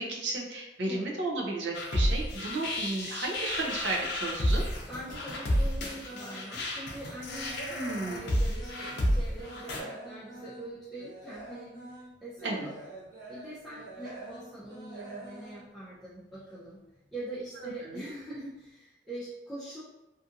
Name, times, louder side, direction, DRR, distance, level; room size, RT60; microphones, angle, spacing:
voice 1, 0.0-4.6 7.7-8.2 12.4-12.7 17.8-18.0, right 2 dB, 75° right, -1 dB, 0.6 m, -33 dB
sound 1, 1.7-9.8, equal, 65° left, 0.5 m, -31 dB
voice 2, 4.9-12.7 13.3-16.8 17.1-19.8, right 1 dB, ahead, -11 dB, 0.5 m, -43 dB
sound 2, 6.0-6.5 6.9-9.1 9.4-16.6 16.9-17.2 17.7-17.8 18.2-18.3, right 2 dB, 45° right, 1.0 m, -45 dB
2.6 x 2.5 x 2.5 m, 0.95 s
head